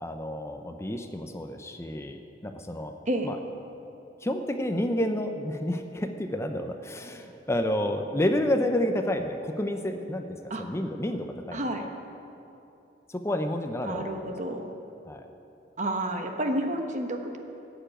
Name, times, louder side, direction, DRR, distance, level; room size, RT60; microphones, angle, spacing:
voice 1, 0.0-2.9 3.2-3.4 4.2-11.9 13.1-14.3 15.0-15.3, left 1 dB, 15° left, 6 dB, 0.6 m, -30 dB
voice 2, 11.5-11.8 13.8-14.7 15.8-17.4, right 1 dB, 45° right, 4 dB, 1.1 m, -30 dB
15.0 x 7.0 x 8.9 m, 2.9 s
head